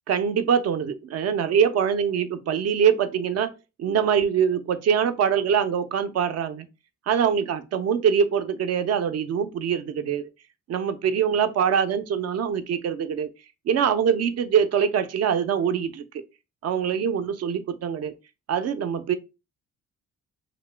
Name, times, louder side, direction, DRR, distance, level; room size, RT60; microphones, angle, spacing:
voice 1, 0.1-3.5 3.8-6.7 7.1-10.3 10.7-13.3 13.7-16.0 16.6-18.1 18.5-19.1, right 7 dB, 55° right, 0.6 m, -23 dB
2.9 x 2.8 x 3.2 m
cardioid pair, 90°, 30 cm